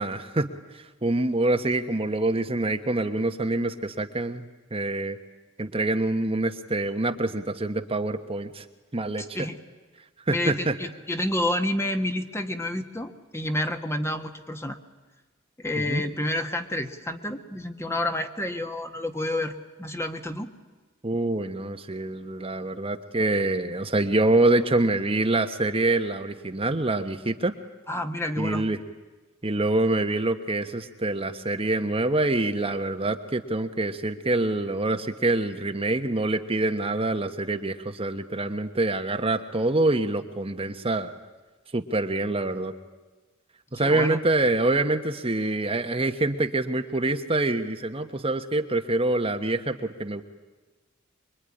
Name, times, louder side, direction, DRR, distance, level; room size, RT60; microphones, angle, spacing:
voice 1, 0.0-5.2 5.6-8.6 8.9-9.5 10.3-10.8 15.9-16.0 21.0-27.5 28.4-28.8 29.4-41.1 41.7-42.7 43.7-50.2, right 2 dB, 30° right, 6 dB, 1.2 m, -26 dB
voice 2, 10.3-14.8 15.6-20.5 27.9-28.6 43.8-44.2, left 1 dB, 15° left, 6 dB, 1.6 m, -29 dB
25.0 x 23.5 x 10.0 m, 1.2 s
head